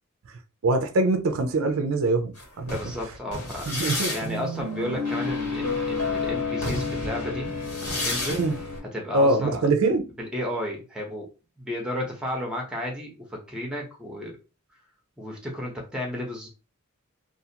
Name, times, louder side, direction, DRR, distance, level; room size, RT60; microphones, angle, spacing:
voice 1, 0.6-2.8 3.7-4.1 8.3-8.5 9.1-10.0, right 2 dB, 60° right, 0.4 m, -23 dB
sound 1, 2.4-8.8, left 3 dB, 75° left, 1.5 m, -29 dB
voice 2, 2.6-7.5 7.8-8.4 8.9-9.7 10.2-11.3 11.6-14.4 15.2-16.5, left 1 dB, 5° right, 0.7 m, -33 dB
2.5 x 2.4 x 2.7 m
head